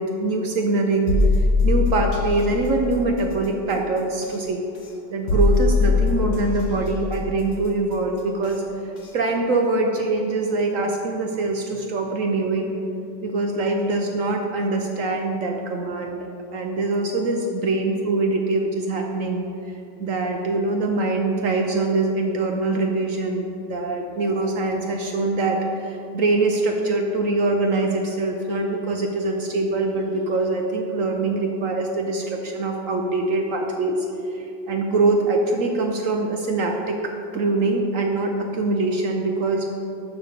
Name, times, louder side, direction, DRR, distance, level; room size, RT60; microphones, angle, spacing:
voice 1, 0.0-4.6 5.1-12.8 13.2-39.7, right 2 dB, 65° right, 2 dB, 0.8 m, -24 dB
sound 1, 1.1-2.4 4.2-4.3 5.3-6.6 8.4-8.5 9.0-9.1, left 3 dB, 50° left, 1.6 m, -20 dB
7.0 x 5.8 x 6.6 m, 2.7 s
omnidirectional pair, 2.0 m